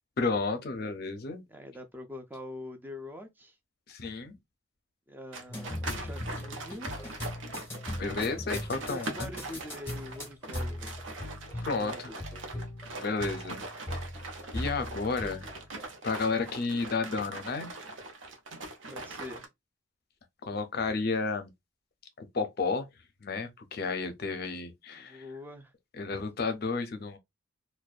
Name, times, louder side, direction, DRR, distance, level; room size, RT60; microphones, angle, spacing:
voice 1, 0.2-1.4 3.9-4.4 8.0-9.3 11.6-12.1 12.9-13.6 14.5-15.5 16.0-17.7 20.4-21.5 22.2-22.9 23.2-25.3 26.0-27.2, left 4 dB, 50° left, 0.5 m, -32 dB
voice 2, 1.5-3.6 5.1-6.9 8.8-11.0 11.5-12.3 18.9-19.4 25.0-25.7, left 1 dB, 10° right, 0.3 m, -44 dB
sound 1, 5.3-19.5, right 2 dB, 65° right, 0.6 m, -41 dB
sound 2, 5.5-16.4, left 1 dB, 10° left, 0.8 m, -39 dB
2.5 x 2.1 x 2.3 m
head